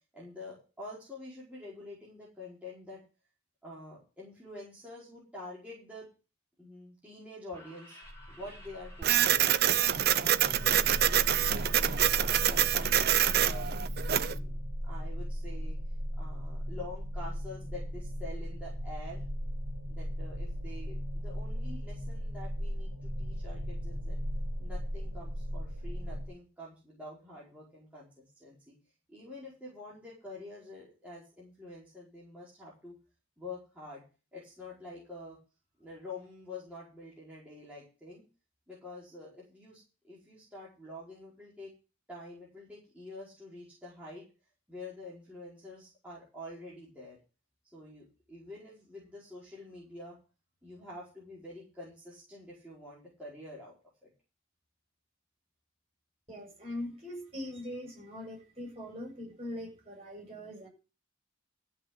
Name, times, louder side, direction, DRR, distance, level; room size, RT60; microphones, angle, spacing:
voice 1, 0.1-3.0 3.6-6.1 6.6-8.0 8.4-9.5 9.7-13.7 14.1-14.6 14.8-15.8 16.2-19.2 19.9-24.2 24.6-28.7 29.1-33.0 33.4-34.0 34.3-35.4 35.8-38.2 38.7-41.7 42.1-44.2 44.7-47.2 47.7-50.2 50.6-53.7 54.0-54.1, left 2 dB, 5° right, -8 dB, 4.9 m, -47 dB
sound 1, 7.4-13.0, left 1 dB, 10° left, 4.8 m, -55 dB
sound 2, 8.0-26.2, equal, 85° right, 3.0 m, -37 dB
Printer, 9.0-14.4, right 10 dB, 45° right, 0.6 m, -26 dB
voice 2, 56.3-60.7, left 1 dB, 30° right, 1 dB, 7.9 m, -41 dB
14.5 x 5.9 x 8.0 m, 0.33 s
head